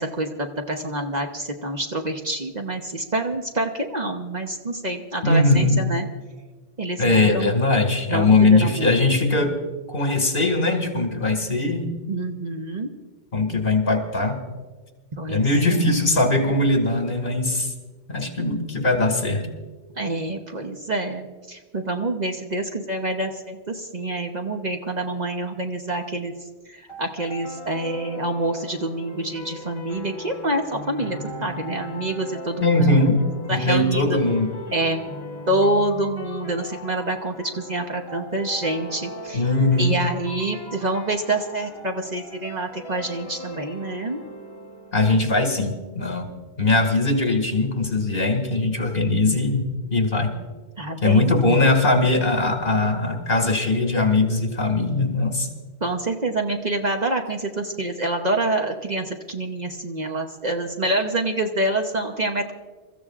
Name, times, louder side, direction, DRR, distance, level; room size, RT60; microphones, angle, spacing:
voice 1, 0.0-6.1 6.8-7.5 8.1-8.9 12.1-12.9 15.2-15.9 20.0-26.3 26.7-32.8 33.5-34.2 34.7-35.0 35.5-39.4 39.8-44.2 50.8-51.4 55.8-62.5, right 2 dB, 40° right, 3 dB, 1.0 m, -27 dB
voice 2, 5.2-5.8 7.0-9.6 9.9-11.9 13.3-14.4 15.3-17.7 18.1-19.5 32.6-33.2 33.5-34.5 39.3-40.0 44.9-46.3 46.6-49.6 49.9-50.3 51.0-55.5, left 2 dB, 55° left, 3 dB, 2.2 m, -20 dB
sound 1, 26.9-45.8, equal, 25° left, 1.4 m, -39 dB
27.5 x 14.5 x 2.5 m, 1.4 s
omnidirectional pair, 1.1 m